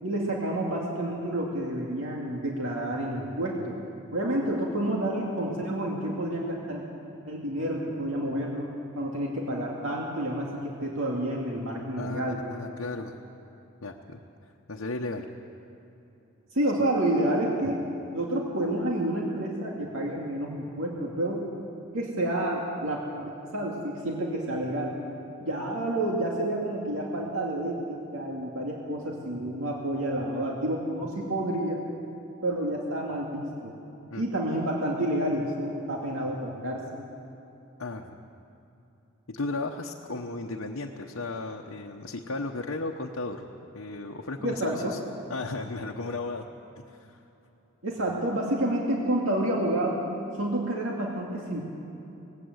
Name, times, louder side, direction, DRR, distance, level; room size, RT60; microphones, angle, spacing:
voice 1, 0.0-3.8 4.1-6.8 7.3-8.7 9.0-12.4 16.5-17.8 18.1-21.5 21.9-24.9 25.4-31.8 32.4-33.7 34.2-36.8 44.4-44.9 47.8-50.0 50.3-51.6, right 1 dB, 75° right, -2 dB, 2.3 m, -29 dB
voice 2, 12.0-13.2 13.8-14.2 14.7-15.3 34.1-34.2 37.8-38.2 39.3-43.5 43.7-45.0 45.3-46.5 46.8-47.2, left 3 dB, 85° left, 0 dB, 1.0 m, -35 dB
19.0 x 17.0 x 8.0 m, 2.9 s
head